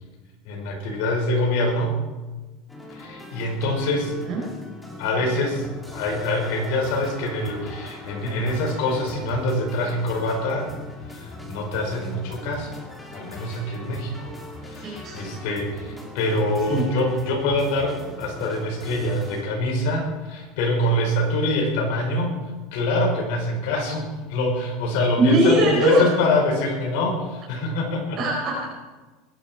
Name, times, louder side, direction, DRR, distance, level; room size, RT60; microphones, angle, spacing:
voice 1, 0.5-1.9 2.9-4.2 5.0-5.7 5.9-10.7 11.1-12.8 13.1-14.3 14.6-22.4 22.7-28.2, left 1 dB, 65° left, 1 dB, 5.4 m, -25 dB
sound 1, 2.7-19.4, left 1 dB, 5° left, 2.4 m, -40 dB
voice 2, 14.8-15.2 16.7-16.9 25.2-26.1 28.2-28.6, right 1 dB, 30° right, -5 dB, 4.7 m, -20 dB
21.0 x 11.5 x 4.6 m, 1.2 s
supercardioid pair, 155°, 0 cm